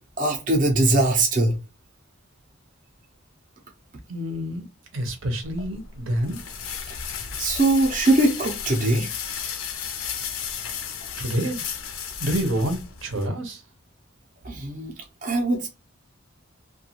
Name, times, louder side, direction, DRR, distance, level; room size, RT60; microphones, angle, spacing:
voice 1, 0.2-1.6 7.4-9.1 14.4-15.7, right 2 dB, 40° right, 0.6 m, -21 dB
voice 2, 4.1-4.7 4.9-6.4 11.2-11.6 12.2-13.6, equal, 75° right, 0.7 m, -27 dB
sound 1, 5.4-13.3, left 7 dB, 85° left, 0.6 m, -34 dB
2.4 x 2.3 x 2.7 m
head